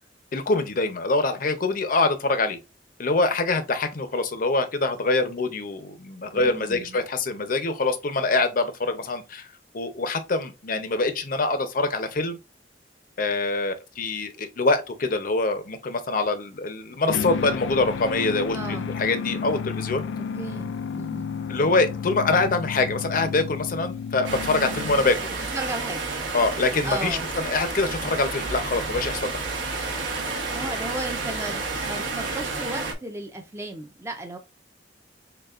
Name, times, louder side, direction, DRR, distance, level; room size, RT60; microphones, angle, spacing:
voice 1, 0.3-2.6 3.0-9.5 9.7-12.4 13.2-20.0 21.5-25.3 26.3-29.3, left 3 dB, 50° left, 0.7 m, -24 dB
voice 2, 6.3-7.0 18.5-18.9 20.2-21.3 25.5-26.0 26.8-27.3 30.5-34.4, right 1 dB, 15° right, 0.5 m, -35 dB
short guitar transitions one note distorted, 17.1-25.3, left 6 dB, 75° left, 0.3 m, -32 dB
sound 1, 24.2-32.9, right 3 dB, 75° right, 1.2 m, -30 dB
6.6 x 2.3 x 2.4 m
head